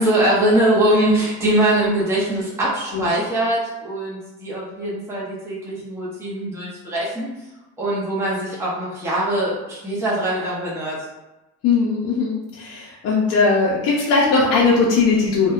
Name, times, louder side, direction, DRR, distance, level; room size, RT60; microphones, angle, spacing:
voice 1, 0.0-7.3 7.8-11.0, right 1 dB, 10° right, -7 dB, 0.5 m, -22 dB
voice 2, 11.6-15.5, left 4 dB, 55° left, -5 dB, 0.5 m, -19 dB
2.7 x 2.1 x 2.3 m, 1.0 s
cardioid pair, 145°, 31 cm